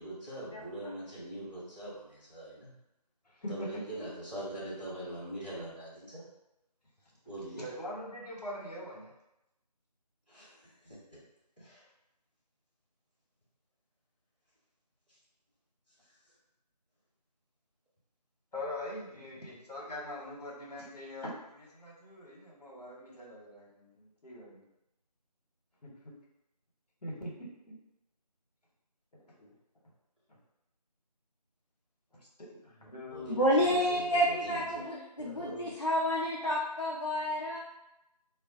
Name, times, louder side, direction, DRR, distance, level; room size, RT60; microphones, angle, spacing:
voice 1, 0.0-2.7 3.5-6.3 7.2-7.6 10.3-11.0 11.6-11.8 33.1-34.9 35.2-35.7, right 1 dB, 15° left, -15 dB, 0.8 m, -43 dB
voice 2, 7.6-9.1 18.5-24.6 25.8-25.9 27.0-27.5 29.1-29.5 32.1-33.7, left 1 dB, 70° left, -3 dB, 1.0 m, -43 dB
voice 3, 33.3-37.6, equal, 45° left, -4 dB, 0.5 m, -29 dB
2.3 x 2.2 x 3.8 m, 0.89 s
figure-of-eight pair, 170°, 21 cm